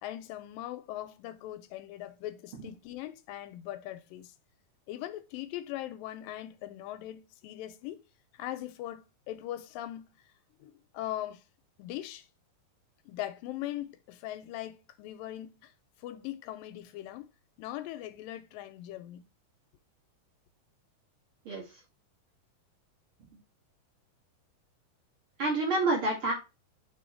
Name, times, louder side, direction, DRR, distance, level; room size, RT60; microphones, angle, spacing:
voice 1, 0.0-4.3 4.9-8.0 8.3-10.0 10.6-11.4 11.8-12.3 13.1-15.7 16.0-17.3 17.6-19.3, left 13 dB, 90° left, 2.3 m, -40 dB
voice 2, 25.4-26.3, right 2 dB, 45° right, 2.3 m, -28 dB
6.1 x 3.7 x 4.4 m
omnidirectional pair, 4.0 m